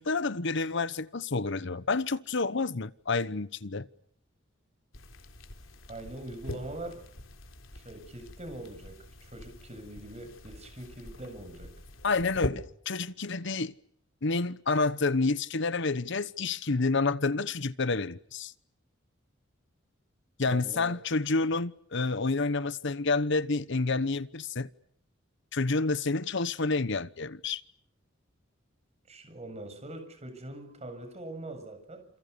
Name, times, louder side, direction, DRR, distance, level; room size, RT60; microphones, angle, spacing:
voice 1, 0.0-3.9 12.0-13.7 14.2-18.5 20.4-24.7 25.5-27.6, left 3 dB, 65° left, 1.1 m, -29 dB
sound 1, 4.9-12.5, left 1 dB, 90° left, 3.8 m, -43 dB
voice 2, 5.9-7.0 7.7-11.8 20.4-20.9 29.1-32.1, right 1 dB, 35° right, 7.6 m, -43 dB
29.0 x 28.5 x 6.9 m
head